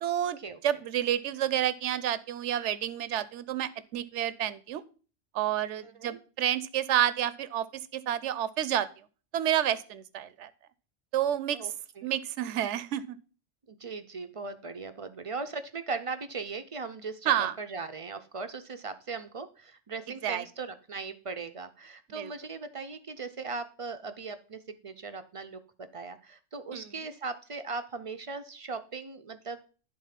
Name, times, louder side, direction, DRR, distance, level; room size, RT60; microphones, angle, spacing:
voice 1, 0.0-4.8 5.3-8.9 9.3-10.5 11.1-11.7 12.0-13.2 17.3-17.6 20.2-20.4 22.2-22.3 26.7-26.9, right 11 dB, 75° right, 16 dB, 0.9 m, -29 dB
voice 2, 5.8-6.2 11.5-11.7 12.0-12.1 13.7-25.6 25.9-29.6, right 4 dB, 45° right, 9 dB, 0.4 m, -38 dB
11.0 x 3.8 x 5.7 m, 0.38 s
omnidirectional pair, 1.3 m